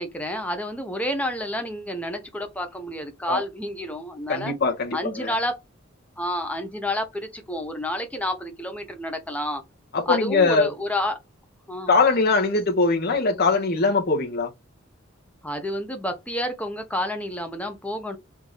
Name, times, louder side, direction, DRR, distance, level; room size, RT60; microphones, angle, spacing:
voice 1, 0.0-4.5 4.9-5.6 6.2-9.6 10.1-11.2 11.7-11.9 15.4-18.2, left 1 dB, 5° left, 0.7 m, -29 dB
voice 2, 4.3-5.3 9.9-10.7 11.9-14.5, left 4 dB, 50° left, 1.0 m, -21 dB
3.6 x 2.6 x 4.5 m
head